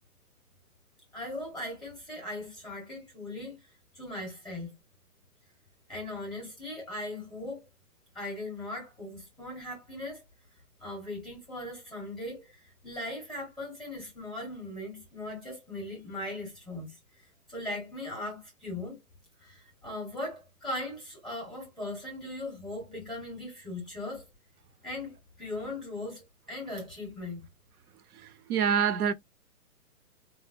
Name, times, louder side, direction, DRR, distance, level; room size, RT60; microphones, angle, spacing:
voice 1, 1.1-3.6 3.9-4.7 5.9-7.7 8.1-10.2 10.8-17.0 17.5-19.0 19.4-24.2 24.8-27.5, left 1 dB, ahead, 0.7 m, -39 dB
voice 2, 28.5-29.1, right 7 dB, 70° right, 0.7 m, -25 dB
3.8 x 2.1 x 2.4 m
hypercardioid pair, 160°, 46 cm